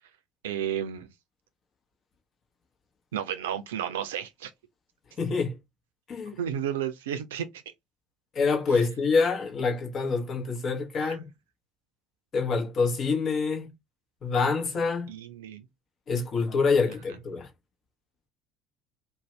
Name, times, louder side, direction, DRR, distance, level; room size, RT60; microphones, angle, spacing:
voice 1, 0.4-1.1 3.1-4.5 6.4-7.6 11.0-11.2 15.1-15.7, right 9 dB, 80° right, 0.4 m, -32 dB
voice 2, 5.2-5.6 6.1-6.3 8.3-11.3 12.3-13.7 14.2-15.1 16.1-17.5, left 4 dB, 45° left, 0.9 m, -26 dB
2.6 x 2.1 x 3.1 m
hypercardioid pair, 65°, 0 cm